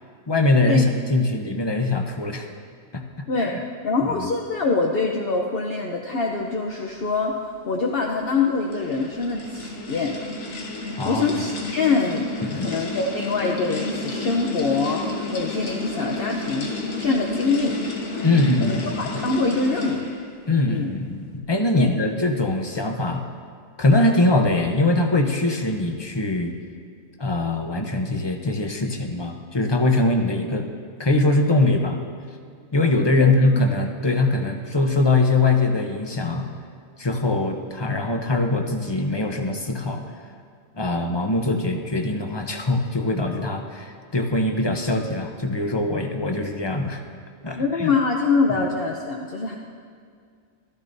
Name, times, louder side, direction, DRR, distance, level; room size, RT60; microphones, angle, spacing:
voice 1, 0.3-2.5 2.9-3.6 4.2-4.3 11.0-11.2 12.4-12.7 18.2-19.0 20.5-23.2 23.8-26.5 27.2-30.7 31.0-32.0 32.7-36.5 37.0-40.0 40.7-47.0 47.4-47.9, left 2 dB, 25° left, 4 dB, 0.7 m, -22 dB
voice 2, 3.8-7.3 7.7-10.2 11.0-12.3 12.5-15.0 15.3-16.7 17.0-17.7 18.6-20.1 20.7-20.9 21.8-21.9 33.2-33.6 47.5-49.6, left 4 dB, 55° left, 1 dB, 0.9 m, -24 dB
sound 1, 8.2-20.3, left 3 dB, 80° left, 1.7 m, -31 dB
14.5 x 13.5 x 2.6 m, 2.2 s
omnidirectional pair, 1.3 m